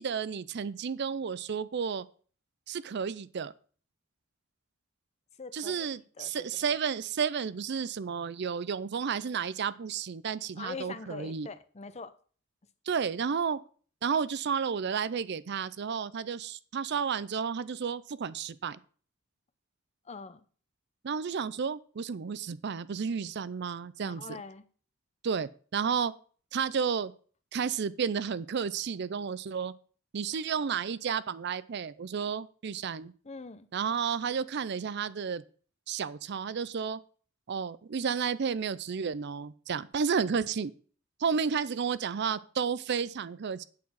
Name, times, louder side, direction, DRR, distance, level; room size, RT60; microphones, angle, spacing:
voice 1, 0.0-2.1 2.7-3.5 5.5-11.5 12.9-13.6 14.0-18.8 21.0-24.4 25.2-26.1 26.5-27.1 27.5-29.7 30.1-33.1 33.7-35.4 35.9-37.0 37.5-40.7 41.2-43.6, right 6 dB, 55° right, 0.5 m, -32 dB
voice 2, 5.4-5.9 6.2-6.6 10.6-12.1 20.1-20.4 24.0-24.6 33.2-33.7, left 4 dB, 30° left, 0.7 m, -43 dB
8.6 x 6.0 x 6.2 m
head